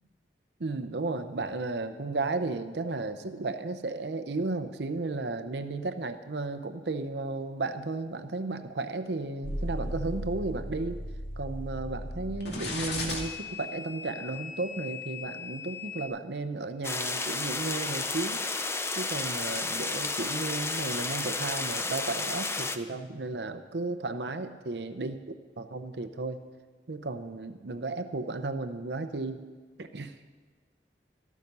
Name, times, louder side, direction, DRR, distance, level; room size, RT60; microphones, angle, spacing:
voice 1, 0.6-11.0 11.4-18.4 19.0-26.4 26.9-29.4 29.8-30.1, right 3 dB, 70° right, 9 dB, 0.7 m, -34 dB
sound 1, 9.4-16.1, left 2 dB, 70° left, 2.4 m, -37 dB
sound 2, 16.8-22.8, left 3 dB, 15° left, 0.6 m, -32 dB
13.5 x 12.0 x 5.4 m, 1.4 s
head